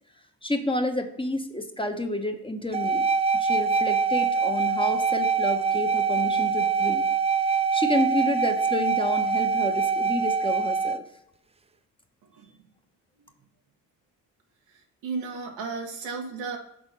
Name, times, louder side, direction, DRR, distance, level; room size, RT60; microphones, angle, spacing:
voice 1, 0.4-3.0 3.3-7.0 7.7-11.0, left 1 dB, 10° left, 5 dB, 1.0 m, -29 dB
sound 1, 2.7-11.0, right 5 dB, 15° right, 0.4 m, -24 dB
voice 2, 12.3-12.6 13.2-13.3 14.7-16.6, right 4 dB, 85° right, 2 dB, 1.3 m, -35 dB
6.2 x 4.0 x 5.3 m, 0.76 s
hypercardioid pair, 45°, 43 cm